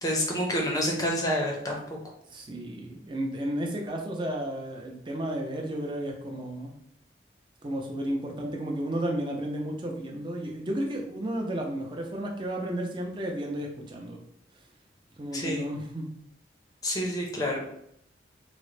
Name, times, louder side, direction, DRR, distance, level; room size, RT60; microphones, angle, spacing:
voice 1, 0.0-1.8 15.3-15.7 16.8-17.6, equal, 20° left, -1 dB, 0.6 m, -28 dB
voice 2, 2.3-6.7 7.6-14.2 15.2-16.1, right 1 dB, 25° right, 1 dB, 0.5 m, -33 dB
3.7 x 2.0 x 3.2 m, 0.73 s
head